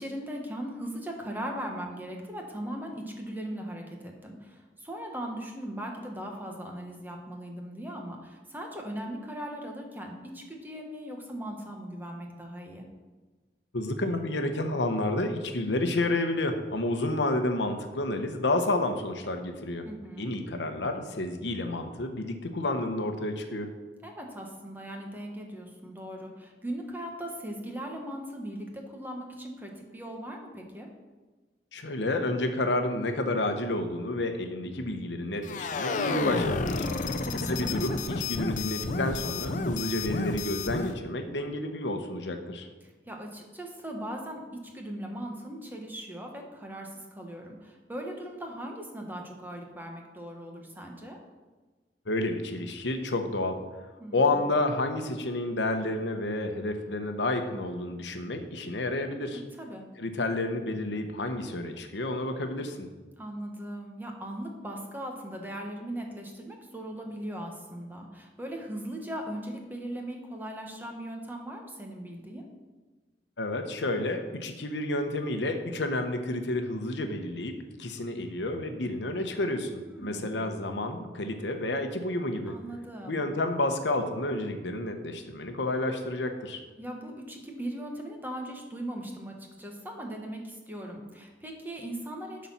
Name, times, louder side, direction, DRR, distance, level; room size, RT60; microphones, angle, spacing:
voice 1, 0.0-12.8 19.8-20.3 24.0-30.9 36.8-37.2 43.1-51.2 54.0-54.4 59.3-59.9 63.2-72.5 79.8-80.4 82.4-83.2 86.8-92.5, right 1 dB, 10° right, 1 dB, 1.3 m, -39 dB
voice 2, 13.7-19.9 20.2-23.7 31.7-36.9 37.3-42.7 52.1-53.6 54.1-59.4 60.0-62.9 73.4-77.5 77.8-82.6 83.0-86.6, left 2 dB, 75° left, 6 dB, 0.9 m, -30 dB
sound 1, 35.4-41.0, left 3 dB, 45° left, 0.6 m, -31 dB
11.5 x 4.2 x 5.7 m, 1.3 s
head